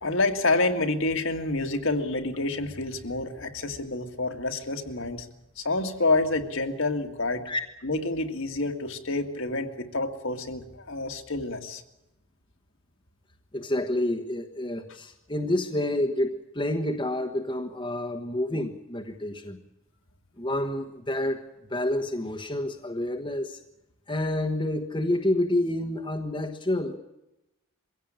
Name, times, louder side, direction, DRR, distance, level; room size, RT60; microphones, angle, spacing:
voice 1, 0.0-5.3 5.6-7.5 7.8-11.8, left 2 dB, 60° left, 5 dB, 2.0 m, -28 dB
voice 2, 13.5-19.6 20.4-21.4 21.7-23.6 24.1-27.0, left 1 dB, 20° left, 3 dB, 1.3 m, -28 dB
23.5 x 16.5 x 8.8 m, 0.93 s
head